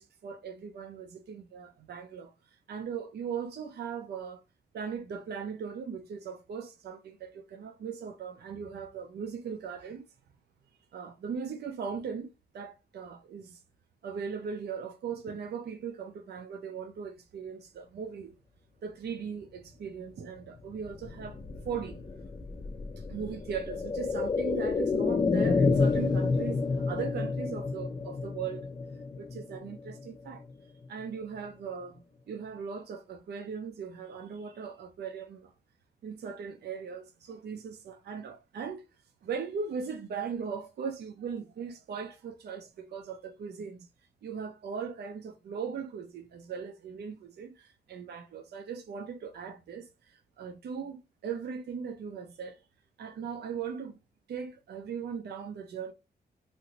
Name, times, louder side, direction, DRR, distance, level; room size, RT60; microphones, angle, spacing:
voice 1, 0.0-2.3 2.7-4.4 4.7-10.0 10.9-13.6 14.0-18.3 18.8-22.2 23.0-28.7 29.2-30.4 30.9-35.5 36.0-38.8 39.2-43.9 44.2-52.6 53.0-54.0 54.3-55.9, right 6 dB, 70° right, 0.5 m, -39 dB
sound 1, 20.7-30.5 30.8-30.9, left 4 dB, 25° left, 0.4 m, -30 dB
2.9 x 2.6 x 2.9 m
wide cardioid pair, 110°, 17 cm